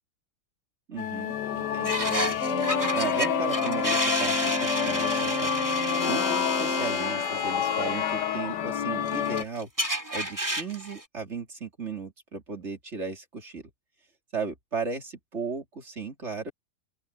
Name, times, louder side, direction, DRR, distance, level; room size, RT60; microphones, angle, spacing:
voice 1, 0.9-2.4 2.9-5.5 6.1-9.7 10.1-13.6 14.3-16.5, right 5 dB, 40° right, 3.7 m, -36 dB
sound 1, 1.0-9.4, left 10 dB, 90° left, 1.4 m, -29 dB
sound 2, 1.8-8.5 9.1-11.0, equal, 10° right, 3.0 m, -31 dB
Organ, 2.4-7.5, left 1 dB, 45° left, 3.4 m, -32 dB
open air
omnidirectional pair, 1.8 m